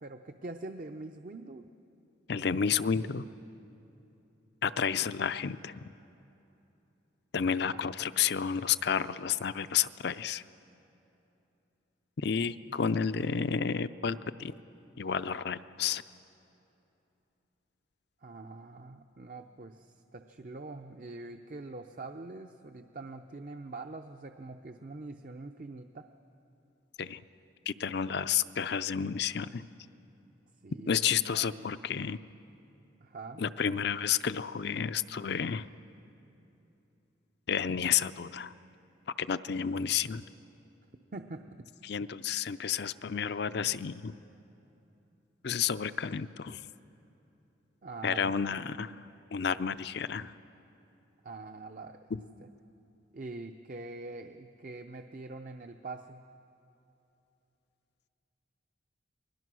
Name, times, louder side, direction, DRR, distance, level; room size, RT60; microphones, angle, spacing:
voice 1, 0.0-1.7 7.7-7.9 18.2-26.0 30.6-31.0 31.3-31.8 33.0-33.4 41.1-41.6 47.8-48.7 51.2-52.0 52.4-52.5 53.1-56.2, right 3 dB, 45° right, 6 dB, 0.6 m, -44 dB
voice 2, 2.3-3.2 4.6-5.8 7.3-10.4 12.2-14.5 15.0-16.0 27.0-27.2 27.7-29.7 30.9-32.2 33.4-35.7 37.5-38.5 39.2-40.2 41.8-44.2 45.4-46.6 48.0-49.0 49.3-50.3 52.1-52.2, left 7 dB, 55° left, 13 dB, 0.5 m, -31 dB
28.5 x 21.0 x 6.2 m, 2.9 s
head